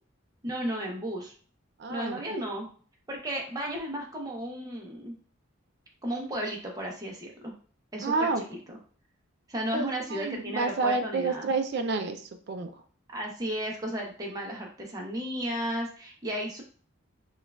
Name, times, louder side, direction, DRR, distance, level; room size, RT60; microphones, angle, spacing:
voice 1, 0.4-1.3 1.9-2.7 3.1-5.1 6.0-7.5 7.9-8.8 9.5-11.5 13.1-16.6, equal, 20° right, -1 dB, 0.7 m, -34 dB
voice 2, 1.8-2.5 8.0-8.4 9.7-12.7, right 4 dB, 55° right, 6 dB, 0.4 m, -30 dB
6.2 x 2.4 x 2.3 m, 0.42 s
head